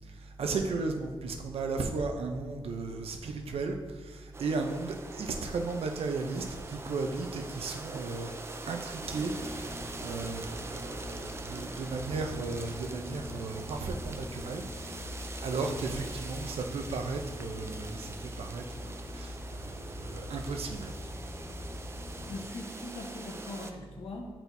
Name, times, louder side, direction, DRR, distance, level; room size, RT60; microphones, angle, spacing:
voice 1, 0.4-8.3 8.7-15.0 15.4-20.9, right 3 dB, 85° right, 4 dB, 0.6 m, -35 dB
sound 1, 4.3-23.7, right 3 dB, 25° right, 0.4 m, -44 dB
sound 2, 9.0-22.4, left 1 dB, 20° left, 0.6 m, -43 dB
voice 2, 22.3-24.3, left 2 dB, 80° left, 1 dB, 0.9 m, -41 dB
8.0 x 4.3 x 2.7 m, 1.4 s
wide cardioid pair, 110°, 10 cm